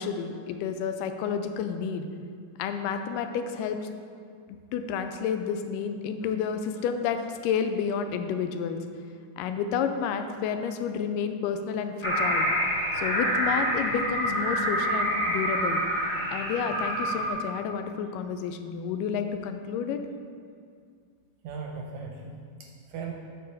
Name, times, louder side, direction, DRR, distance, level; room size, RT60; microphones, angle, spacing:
voice 1, 0.0-2.1 2.6-3.9 4.5-8.8 9.4-12.5 12.9-15.8 16.3-20.0, left 7 dB, 85° left, 8 dB, 2.1 m, -30 dB
sound 1, 12.0-17.3, equal, 15° left, 0.8 m, -27 dB
voice 2, 21.4-23.1, right 5 dB, 80° right, 1 dB, 1.8 m, -38 dB
8.7 x 4.0 x 6.6 m, 2.2 s
omnidirectional pair, 3.8 m